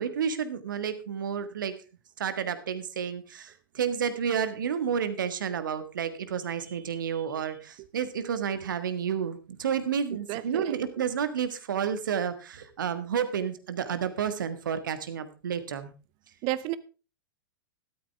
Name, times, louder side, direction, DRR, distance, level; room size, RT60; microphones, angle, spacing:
voice 1, 0.0-1.7 2.2-15.9, right 7 dB, 65° right, 12 dB, 1.6 m, -30 dB
voice 2, 10.3-11.0 16.4-16.8, right 16 dB, 40° right, 17 dB, 0.8 m, -32 dB
13.5 x 12.5 x 3.4 m, 0.32 s
figure-of-eight pair, 100°, 12 cm